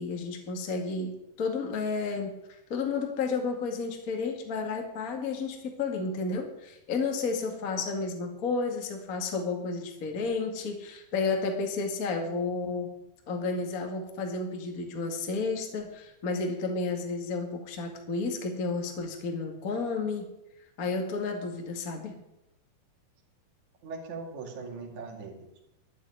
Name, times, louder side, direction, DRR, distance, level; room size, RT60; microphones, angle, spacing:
voice 1, 0.0-2.3 2.7-12.9 13.3-20.3 20.8-22.1, left 4 dB, 30° left, 3 dB, 1.7 m, -32 dB
voice 2, 23.8-25.6, right 4 dB, 50° right, -1 dB, 3.5 m, -40 dB
12.0 x 8.3 x 9.6 m, 0.87 s
omnidirectional pair, 4.7 m